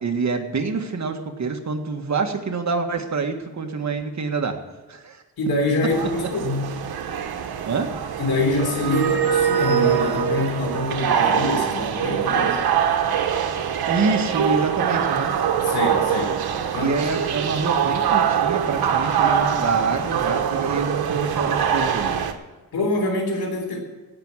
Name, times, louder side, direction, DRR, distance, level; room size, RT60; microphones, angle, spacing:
voice 1, 0.0-4.6 4.9-5.2 7.6-7.9 13.9-15.4 16.8-22.1, right 4 dB, 50° right, 4 dB, 1.7 m, -26 dB
voice 2, 5.4-6.7 8.2-12.6 15.6-16.4 16.7-17.0 22.7-23.8, left 2 dB, 80° left, 2 dB, 3.6 m, -25 dB
sound 1, 5.9-22.3, right 8 dB, 85° right, 1.2 m, -23 dB
16.5 x 6.2 x 8.3 m, 1.2 s
cardioid pair, 95°, 36 cm